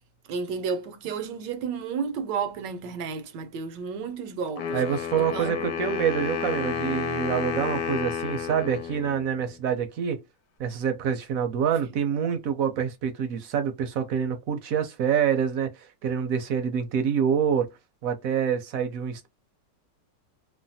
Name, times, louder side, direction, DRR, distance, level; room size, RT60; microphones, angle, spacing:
voice 1, 0.3-4.8 5.2-5.6 11.8-11.9, right 6 dB, 80° right, 1.3 m, -32 dB
Wind instrument woodwind instrument, 4.6-9.6, left 7 dB, 80° left, 1.2 m, -31 dB
voice 2, 4.7-10.2 10.6-17.7 18.0-19.3, right 8 dB, 65° right, 0.9 m, -26 dB
3.2 x 2.1 x 2.7 m
omnidirectional pair, 1.9 m